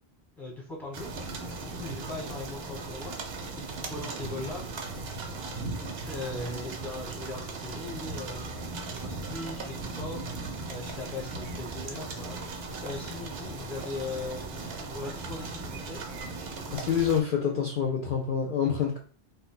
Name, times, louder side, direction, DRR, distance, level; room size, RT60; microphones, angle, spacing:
voice 1, 0.4-1.1 1.6-3.1 3.6-4.6 6.1-8.4 8.8-10.3 10.7-16.0, left 3 dB, ahead, -2 dB, 0.9 m, -39 dB
sound 1, 0.9-17.2, right 3 dB, 70° right, 0.8 m, -37 dB
voice 2, 16.7-19.0, left 7 dB, 60° left, 1 dB, 0.6 m, -27 dB
2.6 x 2.1 x 3.7 m, 0.40 s
omnidirectional pair, 1.1 m